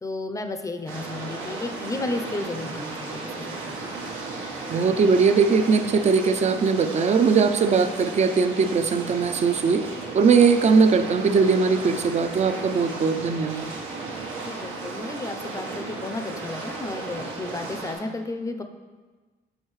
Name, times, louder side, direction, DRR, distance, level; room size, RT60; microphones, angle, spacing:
voice 1, 0.0-3.9 14.3-18.6, left 2 dB, 15° left, 6 dB, 0.5 m, -33 dB
sound 1, 0.9-17.9, right 3 dB, 90° right, 1.3 m, -35 dB
voice 2, 4.7-9.8 10.1-13.7, right 5 dB, 35° right, 10 dB, 0.4 m, -20 dB
6.4 x 5.5 x 3.1 m, 1.4 s
cardioid pair, 90°, 20 cm